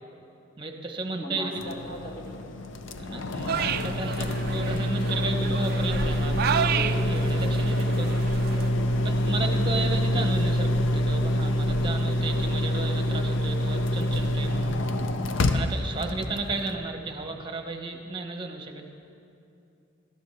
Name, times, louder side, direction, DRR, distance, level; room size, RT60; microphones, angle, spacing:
voice 1, 0.6-1.5 3.0-8.2 9.0-14.8 15.5-18.9, right 3 dB, 25° right, 5 dB, 0.9 m, -34 dB
voice 2, 1.2-2.4 8.8-9.1 11.7-12.1 16.1-16.3, left 1 dB, 40° left, -2 dB, 2.0 m, -40 dB
sound 1, 1.6-16.8, left 1 dB, 60° left, 0.6 m, -26 dB
sound 2, 3.5-8.7, right 8 dB, 45° right, 0.3 m, -32 dB
18.0 x 12.5 x 3.2 m, 2.6 s
head